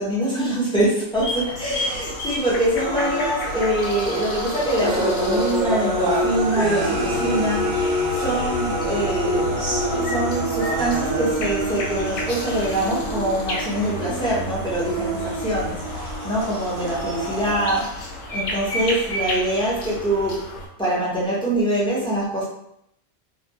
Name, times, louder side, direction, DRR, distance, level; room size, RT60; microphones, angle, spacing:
voice 1, 0.0-20.5 20.8-22.4, right 1 dB, 10° left, -8 dB, 0.3 m, -24 dB
sound 1, 1.1-20.7, left 1 dB, 70° left, 0.8 m, -32 dB
sound 2, 1.8-17.8, right 1 dB, 50° right, 0.8 m, -27 dB
2.2 x 2.1 x 2.7 m, 0.77 s
omnidirectional pair, 1.3 m